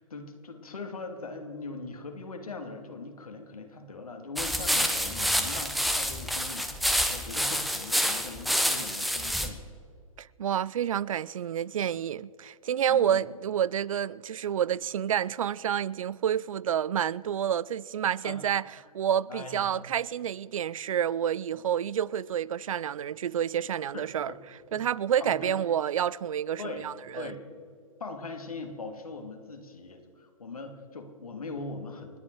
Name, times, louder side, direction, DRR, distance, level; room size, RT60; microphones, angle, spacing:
voice 1, 0.0-9.6 12.9-13.2 18.2-18.4 19.3-19.8 21.5-21.6 23.9-24.4 24.7-24.8 25.2-25.5 26.6-26.9 27.2-27.4 28.0-32.2, left 3 dB, 80° left, 2.4 m, -41 dB
sound 1, 4.4-9.5, equal, ahead, 1.0 m, -28 dB
voice 2, 10.2-18.6 18.9-24.3 24.7-27.3, right 9 dB, 65° right, 0.5 m, -29 dB
29.5 x 9.9 x 4.6 m
figure-of-eight pair, 120°, 18 cm